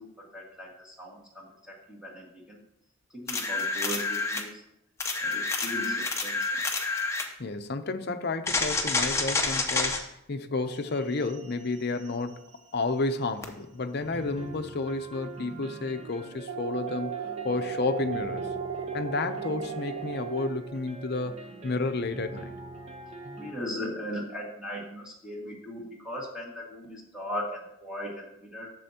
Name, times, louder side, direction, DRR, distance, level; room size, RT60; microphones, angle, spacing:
voice 1, 0.0-2.6 3.1-4.6 5.2-6.6 23.4-28.7, equal, 5° right, -4 dB, 1.8 m, -38 dB
sound 1, 3.3-4.5 5.0-7.3 8.5-10.0 13.4-13.5, left 3 dB, 15° left, 0.7 m, -28 dB
voice 2, 7.4-18.5 18.9-22.5, left 3 dB, 50° left, 7 dB, 0.6 m, -31 dB
sound 2, 10.7-23.5, right 2 dB, 30° right, 0.7 m, -45 dB
sound 3, 16.5-20.5, right 7 dB, 75° right, 0.4 m, -35 dB
11.0 x 6.9 x 2.8 m, 0.79 s
head